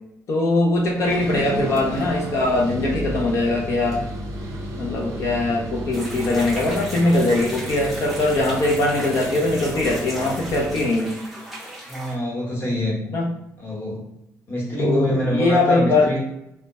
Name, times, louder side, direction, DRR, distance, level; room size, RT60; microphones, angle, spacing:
voice 1, 0.3-4.0 4.7-11.2 13.1-13.3 14.8-16.1, left 2 dB, 55° left, -1 dB, 0.5 m, -21 dB
sound 1, 0.9-11.0, right 1 dB, 75° right, 0.7 m, -33 dB
sound 2, 5.9-12.1, right 1 dB, ahead, 0.5 m, -36 dB
voice 2, 11.9-13.0 13.6-14.1 14.5-16.2, equal, 35° left, -4 dB, 0.9 m, -25 dB
2.2 x 2.0 x 2.8 m, 0.85 s
cardioid pair, 140°, 6 cm